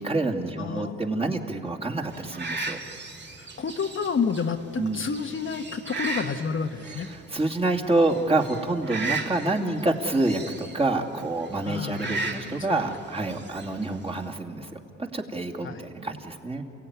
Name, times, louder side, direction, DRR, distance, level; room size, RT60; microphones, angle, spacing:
voice 1, 0.0-2.8 4.8-5.0 6.9-15.8 16.0-16.6, right 2 dB, 20° right, 0 dB, 2.5 m, -27 dB
voice 2, 0.6-1.0 3.4-7.1 11.6-12.8 15.6-15.8, left 5 dB, 40° left, 5 dB, 1.3 m, -30 dB
sound 1, 2.1-14.4, right 3 dB, 35° right, 2.4 m, -37 dB
29.5 x 16.5 x 9.5 m, 2.9 s
cardioid pair, 90°, 30 cm